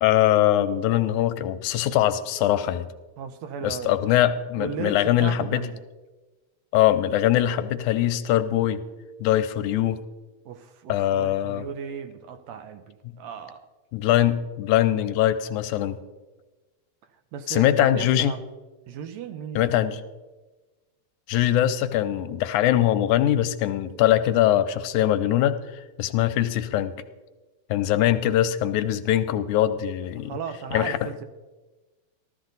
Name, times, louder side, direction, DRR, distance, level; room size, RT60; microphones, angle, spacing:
voice 1, 0.0-2.9 3.6-5.7 6.7-8.8 9.2-10.0 10.9-11.7 13.1-13.2 13.9-16.0 17.5-18.3 19.6-20.0 21.3-26.9 27.7-30.3 30.7-31.1, left 12 dB, 85° left, 11 dB, 2.1 m, -22 dB
voice 2, 3.2-4.0 4.6-5.8 10.5-13.7 17.1-18.4 18.9-19.7 30.2-31.2, right 7 dB, 75° right, 9 dB, 1.8 m, -36 dB
14.5 x 13.0 x 4.0 m, 1.2 s
omnidirectional pair, 3.4 m